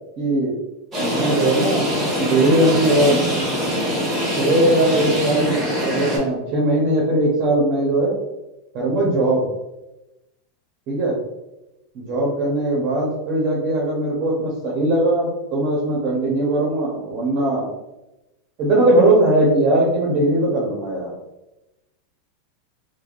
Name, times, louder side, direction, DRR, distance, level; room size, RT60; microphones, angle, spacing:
voice 1, 0.2-0.5 1.0-3.3 4.4-8.1 8.7-9.5 10.9-11.2 11.9-17.7 18.6-21.1, right 1 dB, 40° right, -4 dB, 0.6 m, -19 dB
sound 1, 0.9-6.2, equal, 15° right, 1.0 m, -23 dB
3.3 x 2.0 x 2.3 m, 0.95 s
supercardioid pair, 150°, 0 cm